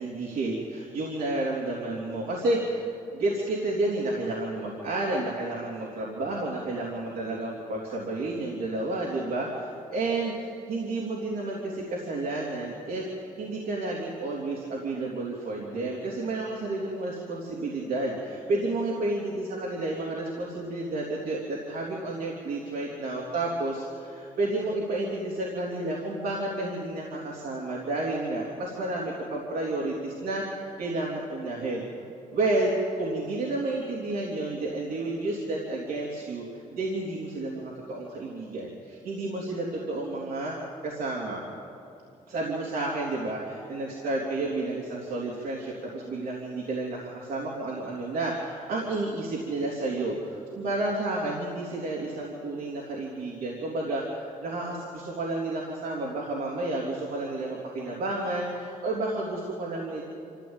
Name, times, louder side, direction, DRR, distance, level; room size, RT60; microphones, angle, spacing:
voice 1, 0.0-2.8 3.1-31.8 32.3-36.4 36.7-40.5 40.8-41.4 42.3-60.0, right 2 dB, 85° right, -4 dB, 3.4 m, -31 dB
25.5 x 15.0 x 9.0 m, 2.8 s
cardioid pair, 80°, 15 cm